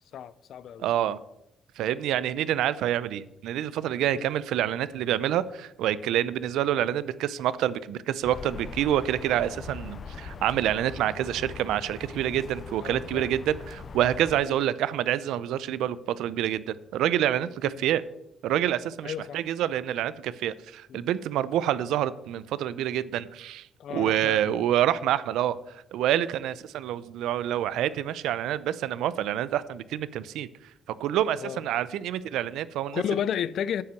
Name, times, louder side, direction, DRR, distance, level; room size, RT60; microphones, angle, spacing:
voice 1, 0.1-0.9 4.1-4.3 12.8-13.4 14.4-14.6 17.6-17.7 19.0-19.4 20.9-21.1 23.8-24.6 31.4-31.6 32.9-33.8, left 9 dB, 70° left, 0.5 m, -32 dB
voice 2, 0.8-1.2 1.8-18.0 18.4-25.6 25.9-30.5 30.9-33.0, right 11 dB, 85° right, 0.5 m, -27 dB
sound 1, 8.2-14.4, left 4 dB, 45° left, 0.8 m, -41 dB
9.5 x 5.8 x 7.6 m
cardioid pair, 90°, 0 cm